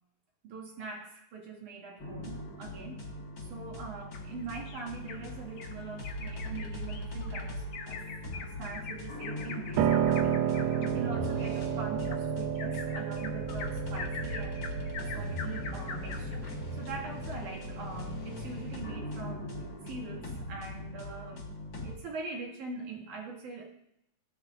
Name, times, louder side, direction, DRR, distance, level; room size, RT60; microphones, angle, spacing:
voice 1, 0.4-3.0 3.4-8.0 8.3-16.5 16.7-21.4 21.8-23.7, right 4 dB, 65° right, -2 dB, 3.9 m, -43 dB
sound 1, 2.0-22.0, left 1 dB, 35° left, 2.6 m, -40 dB
Bird vocalization bird call bird song, 4.1-5.2 5.6-5.7 6.0-16.4 16.8-16.9 17.3-17.4, left 5 dB, 70° left, 1.2 m, -44 dB
Piano, 9.8-19.7, right 9 dB, 80° right, 2.2 m, -32 dB
19.5 x 10.5 x 2.7 m, 0.81 s
omnidirectional pair, 3.8 m